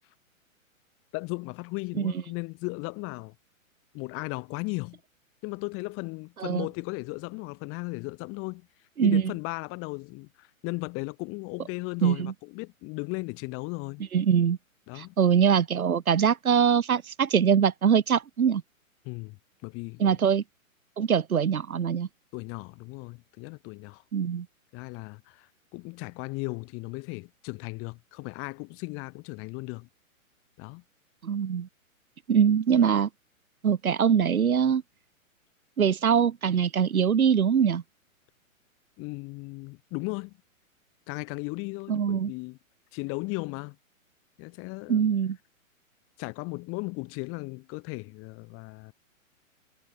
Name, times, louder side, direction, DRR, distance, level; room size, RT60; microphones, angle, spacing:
voice 1, 1.1-3.4 3.9-5.0 5.4-8.7 9.0-14.0 14.9-15.1 19.0-19.4 19.6-20.2 22.3-24.0 24.7-29.9 30.6-30.8 39.0-40.4 41.1-42.6 42.9-43.8 44.4-45.1 46.2-48.9, left 27 dB, 30° left, 4.0 m, -36 dB
voice 2, 12.0-12.3 14.1-14.6 15.0-18.6 20.0-20.4 21.0-22.1 24.1-24.5 31.2-31.7 32.3-33.1 33.6-34.8 35.8-37.8 41.9-42.3 44.9-45.4, right 7 dB, 85° right, 2.1 m, -23 dB
hypercardioid pair, 135°, 42 cm